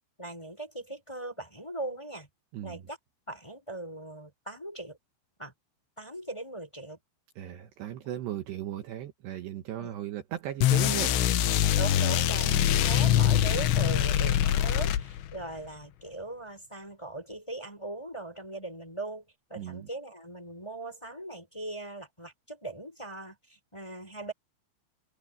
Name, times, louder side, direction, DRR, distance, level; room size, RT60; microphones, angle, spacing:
voice 1, 0.2-2.3 2.6-3.0 3.3-5.0 5.4-5.5 6.0-7.0 9.8-9.9 11.7-19.2 19.5-24.3, right 2 dB, 5° left, 3.9 m, -40 dB
voice 2, 7.4-11.1 12.5-12.8 19.6-19.9, right 12 dB, 70° right, 3.0 m, -37 dB
sound 1, 10.6-15.4, left 11 dB, 70° left, 3.3 m, -24 dB
omnidirectional pair, 5.6 m